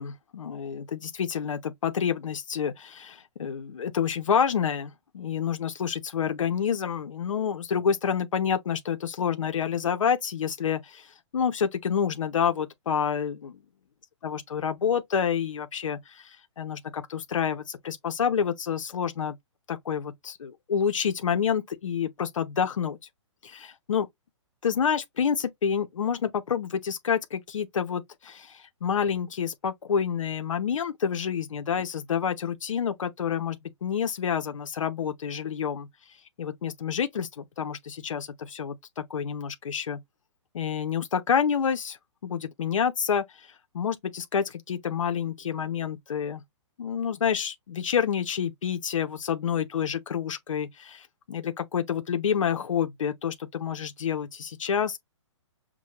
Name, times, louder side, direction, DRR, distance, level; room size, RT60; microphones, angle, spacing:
voice 1, 0.0-13.6 14.2-19.3 19.7-23.0 23.4-24.1 24.6-35.9 36.4-40.0 40.5-42.0 42.2-46.4 46.8-55.0, left 7 dB, 90° left, 0.8 m, -28 dB
6.1 x 2.2 x 2.9 m
hypercardioid pair, 160°, 16 cm